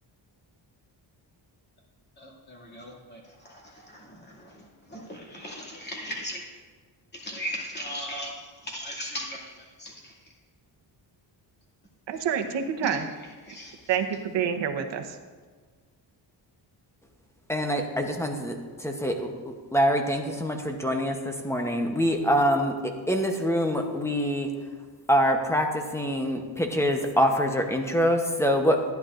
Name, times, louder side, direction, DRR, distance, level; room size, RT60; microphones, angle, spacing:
voice 1, 2.2-6.4 7.1-10.1 12.8-13.0 13.5-14.0, equal, 25° left, -4 dB, 2.4 m, -38 dB
voice 2, 12.1-13.0 13.9-15.2, right 8 dB, 80° right, 6 dB, 1.0 m, -27 dB
voice 3, 17.5-24.5 25.1-28.9, equal, 5° left, 3 dB, 0.8 m, -25 dB
14.5 x 10.5 x 2.5 m, 1.5 s
wide cardioid pair, 165°, 43 cm